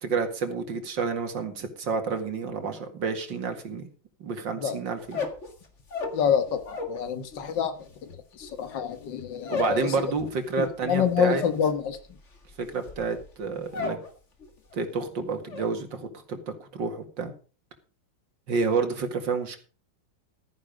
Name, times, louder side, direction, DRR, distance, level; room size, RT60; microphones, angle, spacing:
voice 1, 0.0-3.9 4.2-5.2 9.5-11.4 12.6-14.0 14.7-17.3 18.5-19.6, right 5 dB, 80° right, 2.6 m, -29 dB
sound 1, 5.0-7.0 7.3-14.1 14.4-14.9 15.2-15.7, left 5 dB, 40° left, 2.2 m, -35 dB
voice 2, 6.1-7.8 8.4-9.9 10.6-12.0, left 8 dB, 75° left, 2.0 m, -27 dB
13.5 x 10.0 x 5.2 m
omnidirectional pair, 2.0 m